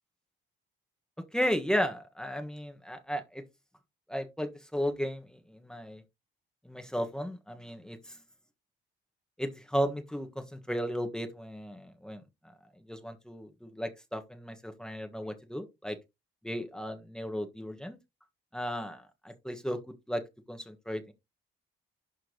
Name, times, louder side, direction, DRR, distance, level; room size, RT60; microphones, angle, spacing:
voice 1, 1.2-3.4 4.1-6.0 6.6-8.2 9.4-12.2 12.9-16.0 16.4-18.0 18.5-19.8 20.1-21.1, equal, 5° left, 1.5 m, -35 dB
11.5 x 4.5 x 3.0 m
cardioid pair, 90°, 20 cm